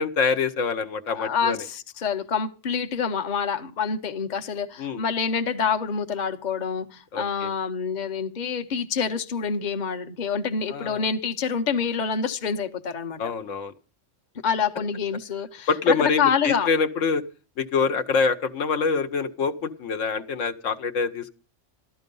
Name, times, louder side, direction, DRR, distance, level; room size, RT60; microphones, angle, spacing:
voice 1, 0.0-1.6 4.8-5.0 7.1-7.5 10.7-11.0 13.2-13.7 15.7-17.2 17.6-21.3, left 5 dB, 75° left, 1.2 m, -25 dB
voice 2, 1.1-13.2 14.4-16.7, left 6 dB, 40° left, 0.9 m, -27 dB
13.5 x 12.0 x 5.3 m
omnidirectional pair, 1.3 m